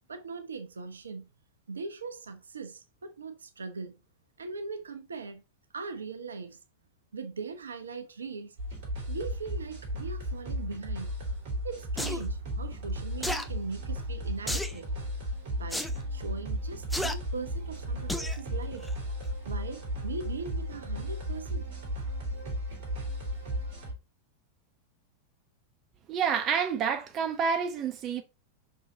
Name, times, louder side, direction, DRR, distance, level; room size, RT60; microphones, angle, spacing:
voice 1, 0.1-1.3 1.7-4.0 4.4-5.4 5.7-6.6 7.1-8.6 9.1-11.1 11.6-14.9 15.5-15.9 16.1-18.9 19.5-21.7, right 4 dB, 70° right, 0.9 m, -40 dB
sound 1, 8.6-23.9, equal, 50° right, 3.3 m, -35 dB
sound 2, 12.0-12.2 13.2-13.5 14.5-14.8 15.7-15.9 16.9-17.2 18.1-18.4 18.8-18.9, left 1 dB, 5° left, 0.7 m, -32 dB
voice 2, 26.1-28.2, right 7 dB, 35° right, 0.9 m, -28 dB
5.7 x 5.4 x 3.9 m
figure-of-eight pair, 90°, 0 cm